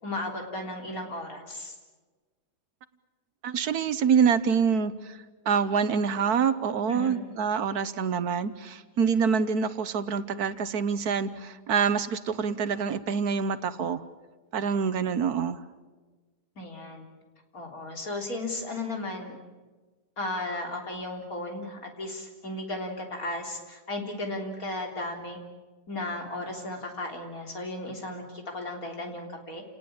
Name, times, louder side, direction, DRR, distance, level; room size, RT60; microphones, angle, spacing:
voice 1, 0.0-1.8 6.9-7.3 16.6-17.0 17.5-19.4 20.2-25.4 25.9-29.6, left 2 dB, 55° left, 2 dB, 3.9 m, -35 dB
voice 2, 3.4-5.2 5.4-14.0 14.5-15.6, right 6 dB, 70° right, 13 dB, 1.5 m, -26 dB
29.0 x 19.5 x 8.7 m, 1.3 s
omnidirectional pair, 1.7 m